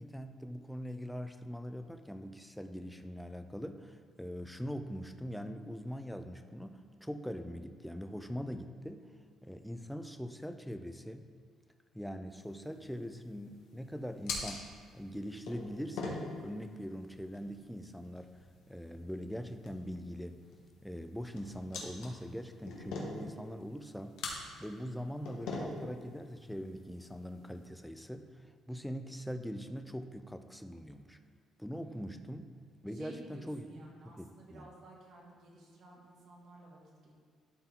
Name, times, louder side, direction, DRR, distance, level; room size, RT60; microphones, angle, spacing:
voice 1, 0.0-9.1 9.4-11.3 11.9-14.7 14.9-18.3 18.7-20.4 20.8-24.2 24.6-31.2 31.6-32.5 32.8-33.7 34.0-34.7, equal, ahead, 7 dB, 0.4 m, -42 dB
sound 1, 12.3-27.6, left 3 dB, 90° left, 1.4 m, -45 dB
voice 2, 31.8-32.2 32.9-37.1, right 1 dB, 60° right, -2 dB, 1.8 m, -54 dB
12.0 x 4.5 x 3.7 m, 2.1 s
cardioid pair, 160°, 0 cm